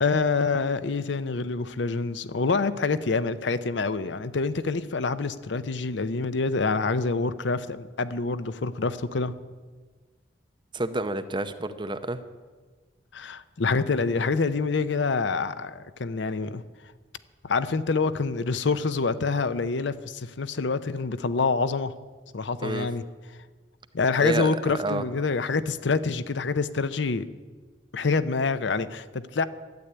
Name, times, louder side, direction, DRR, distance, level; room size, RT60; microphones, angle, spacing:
voice 1, 0.0-9.3 13.1-16.6 17.4-21.9 22.3-23.0 23.9-27.3 27.9-29.4, left 4 dB, 75° left, 14 dB, 0.7 m, -26 dB
voice 2, 10.7-12.2 22.6-22.9 24.2-25.0, right 2 dB, 25° right, 10 dB, 0.7 m, -29 dB
12.0 x 8.2 x 9.8 m, 1.4 s
head